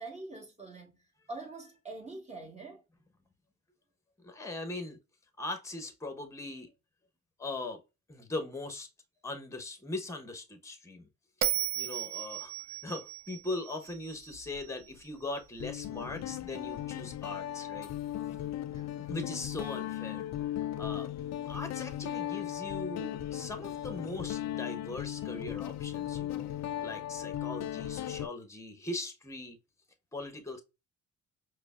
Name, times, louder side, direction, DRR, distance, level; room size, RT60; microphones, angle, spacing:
voice 1, 0.0-2.8 18.7-19.3, right 3 dB, 20° right, 1.6 m, -45 dB
voice 2, 4.2-5.0 5.4-6.7 7.4-7.8 8.1-8.9 9.2-11.1 11.8-12.5 12.8-17.9 19.1-21.2 21.4-26.5 26.8-29.6 30.1-30.6, left 2 dB, 10° left, 0.9 m, -40 dB
Bell, 11.4-14.7, right 14 dB, 65° right, 0.6 m, -35 dB
Guitar, 14.3-14.6 15.6-28.3, left 12 dB, 60° left, 0.4 m, -37 dB
4.9 x 2.2 x 2.3 m
cardioid pair, 90°, 30 cm